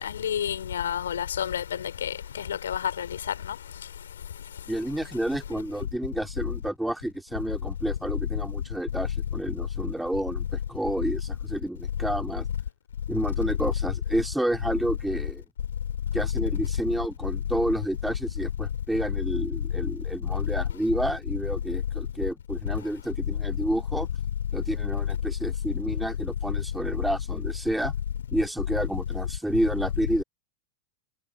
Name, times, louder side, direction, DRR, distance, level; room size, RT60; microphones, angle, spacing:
voice 1, 0.0-1.6 2.0-2.1 2.6-3.1, left 9 dB, 65° left, 3.7 m, -29 dB
voice 2, 4.7-12.5 13.1-15.4 16.1-24.1 24.5-27.9 28.3-30.2, right 1 dB, 5° right, 3.7 m, -30 dB
figure-of-eight pair, 90°, 0 cm